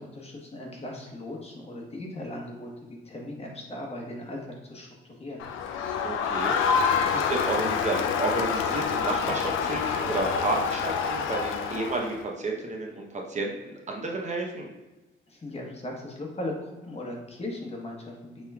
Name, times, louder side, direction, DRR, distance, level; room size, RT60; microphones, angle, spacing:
voice 1, 0.0-5.5 15.3-18.5, left 1 dB, 30° left, -1 dB, 1.1 m, -38 dB
Crowd, 5.4-12.2, left 6 dB, 85° left, 0.4 m, -27 dB
voice 2, 6.0-6.5 7.1-14.7, right 2 dB, 35° right, 0 dB, 0.7 m, -31 dB
5.4 x 3.0 x 2.3 m, 1.1 s
cardioid pair, 90°, 20 cm